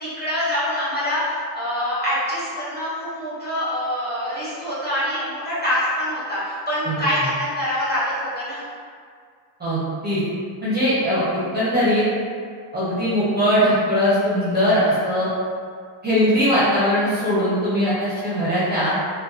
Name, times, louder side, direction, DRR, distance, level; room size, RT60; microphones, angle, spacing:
voice 1, 0.0-8.6, equal, 20° left, -11 dB, 0.7 m, -25 dB
voice 2, 6.8-7.3 9.6-10.2 10.6-12.0 12.7-15.3 16.0-18.9, equal, 20° right, -12 dB, 0.5 m, -20 dB
2.6 x 2.1 x 2.4 m, 2.1 s
cardioid pair, 165°, 49 cm